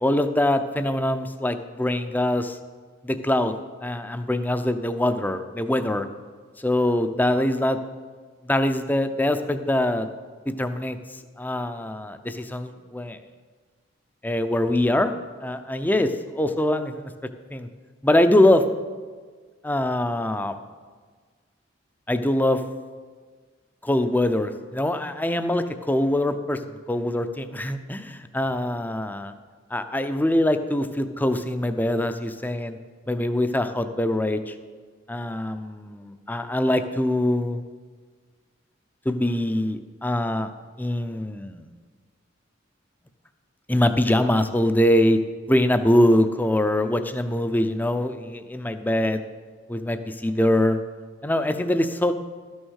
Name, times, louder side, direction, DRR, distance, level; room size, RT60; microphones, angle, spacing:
voice 1, 0.0-2.6 3.0-3.5 3.8-6.1 6.6-7.8 8.5-10.1 10.6-11.0 11.4-13.2 14.2-15.1 15.4-17.1 17.5-17.7 18.0-18.6 19.6-20.6 22.1-22.6 23.8-29.3 29.7-32.8 33.1-34.5 35.1-37.6 39.1-40.5 40.8-41.7 43.7-45.2 45.5-49.2 49.7-50.8 51.2-52.1, left 1 dB, 10° left, 9 dB, 0.5 m, -23 dB
12.5 x 6.3 x 6.4 m, 1.5 s
head